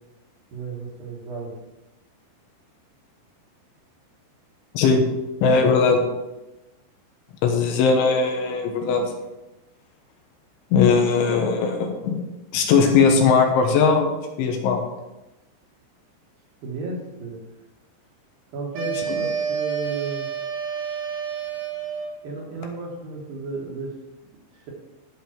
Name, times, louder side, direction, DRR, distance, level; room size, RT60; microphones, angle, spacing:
voice 1, 0.5-1.5 16.6-17.4 18.5-20.3 22.2-23.9, right 3 dB, 60° right, -2 dB, 2.9 m, -33 dB
voice 2, 5.4-6.0 7.4-9.1 10.7-12.2 12.5-14.1 14.4-14.8, left 5 dB, 85° left, 3 dB, 3.7 m, -19 dB
sound 1, 18.7-22.2, right 7 dB, 75° right, 5.6 m, -29 dB
12.0 x 5.8 x 4.6 m, 0.99 s
omnidirectional pair, 5.4 m